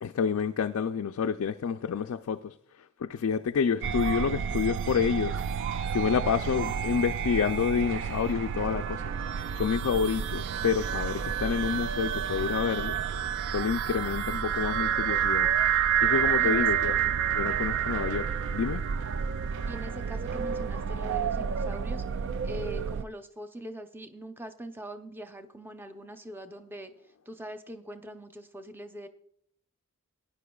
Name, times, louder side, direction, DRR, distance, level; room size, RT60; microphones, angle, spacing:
voice 1, 0.0-5.4 5.9-9.0 9.5-13.0 13.5-15.5 16.0-17.0 17.3-18.8, left 6 dB, 65° left, 0.4 m, -28 dB
sound 1, 3.8-23.0, right 8 dB, 55° right, 0.3 m, -29 dB
voice 2, 6.4-7.1 16.3-16.7 19.7-22.0 22.4-26.9 27.3-29.1, equal, 10° right, 0.6 m, -42 dB
18.0 x 10.0 x 2.3 m
head